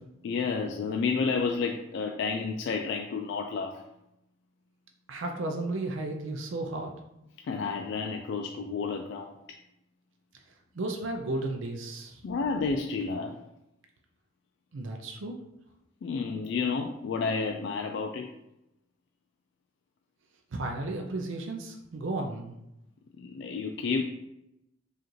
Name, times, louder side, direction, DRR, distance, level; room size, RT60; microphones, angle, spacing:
voice 1, 0.2-3.8 7.5-9.3 12.2-13.4 16.0-18.3 23.2-24.0, left 4 dB, 60° left, 2 dB, 0.3 m, -30 dB
voice 2, 5.1-6.9 10.7-12.2 14.7-15.4 20.5-22.5, right 2 dB, 75° right, 3 dB, 0.5 m, -34 dB
4.8 x 2.5 x 3.0 m, 0.86 s
head